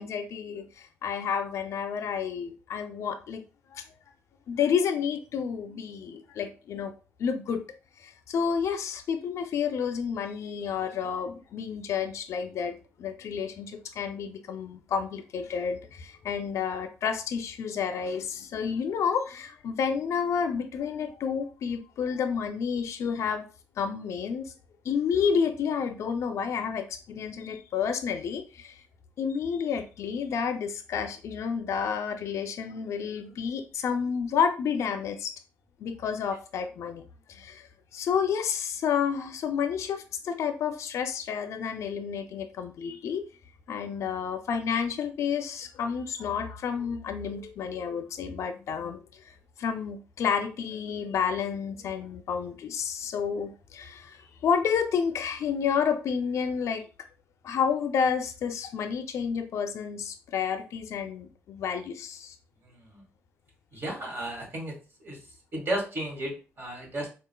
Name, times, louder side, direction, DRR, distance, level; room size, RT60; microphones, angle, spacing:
voice 1, 0.0-3.4 3.7-3.8 4.5-6.9 7.2-23.4 23.8-24.5 24.8-28.8 29.2-35.3 35.8-37.0 37.3-43.2 43.7-56.9 57.4-62.4, left 7 dB, 75° left, 8 dB, 0.4 m, -30 dB
voice 2, 62.6-63.0 63.7-64.7 65.0-65.2 65.5-67.1, right 1 dB, 45° right, 0 dB, 1.9 m, -34 dB
4.8 x 2.4 x 2.2 m, 0.34 s
cardioid pair, 75°, 5 cm